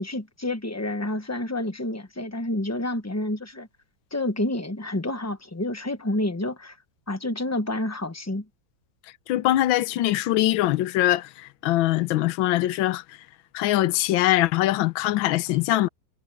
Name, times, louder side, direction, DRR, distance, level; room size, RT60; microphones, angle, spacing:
voice 1, 0.0-3.7 4.1-6.8 7.1-8.4, left 1 dB, 15° left, 0.7 m, -29 dB
voice 2, 9.3-13.0 13.5-15.9, left 15 dB, 75° left, 1.5 m, -22 dB
omnidirectional pair, 2.2 m